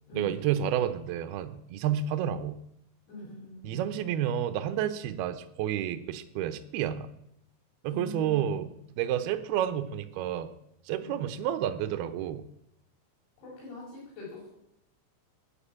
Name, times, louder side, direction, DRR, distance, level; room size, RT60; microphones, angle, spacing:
voice 1, 0.1-2.6 3.6-7.1 7.8-10.5 10.9-12.4, right 10 dB, 80° right, 10 dB, 2.3 m, -30 dB
voice 2, 3.1-3.8 7.9-8.6 11.0-11.2 13.4-14.6, left 2 dB, 65° left, -7 dB, 8.0 m, -42 dB
15.0 x 10.5 x 8.6 m, 0.77 s
omnidirectional pair, 5.6 m